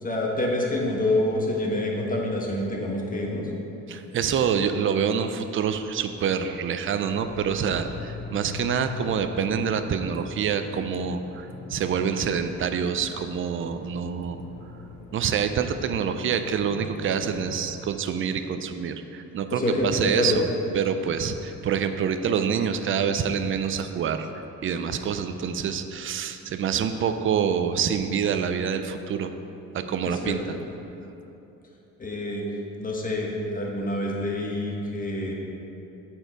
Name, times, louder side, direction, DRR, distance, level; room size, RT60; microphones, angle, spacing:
voice 1, 0.0-3.5 19.5-20.4 30.0-30.4 32.0-32.4 32.8-35.3, left 1 dB, 25° left, -2 dB, 1.4 m, -27 dB
voice 2, 3.9-14.4 15.1-20.5 20.7-24.3 24.6-29.3 29.7-30.6, right 7 dB, 45° right, 8 dB, 0.5 m, -26 dB
sound 1, 7.1-17.8, left 3 dB, 70° left, 1.3 m, -41 dB
7.8 x 4.5 x 5.1 m, 2.9 s
cardioid pair, 90°, 30 cm